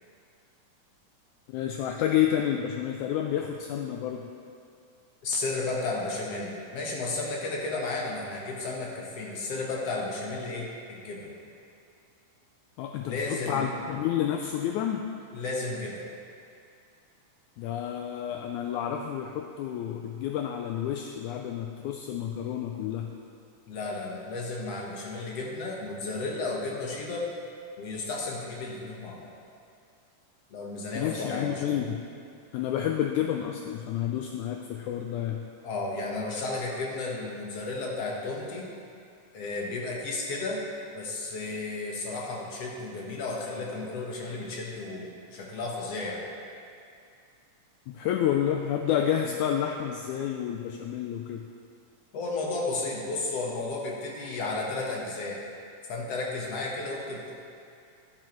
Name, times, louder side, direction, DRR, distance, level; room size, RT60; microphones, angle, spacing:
voice 1, 1.5-4.3 12.8-15.1 17.6-23.1 31.0-32.0 32.5-35.4 47.9-51.4, left 10 dB, 80° left, 3 dB, 1.8 m, -29 dB
voice 2, 5.2-11.3 13.0-13.6 15.3-16.0 23.7-27.3 27.8-29.3 30.5-31.8 35.6-38.7 39.3-40.6 40.9-46.2 52.1-55.4 55.9-57.3, left 3 dB, 60° left, -2 dB, 2.1 m, -33 dB
12.0 x 11.5 x 3.1 m, 2.4 s
omnidirectional pair, 3.7 m